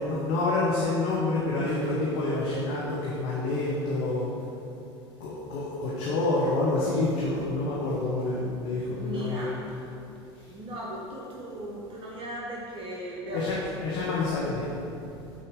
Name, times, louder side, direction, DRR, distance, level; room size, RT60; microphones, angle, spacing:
voice 1, 0.0-4.3 5.2-9.8 13.3-14.7, left 2 dB, 55° left, -6 dB, 1.2 m, -28 dB
voice 2, 8.9-9.5 10.5-13.6, equal, 35° right, -4 dB, 1.1 m, -37 dB
8.6 x 4.2 x 3.7 m, 2.9 s
figure-of-eight pair, 75°, 14 cm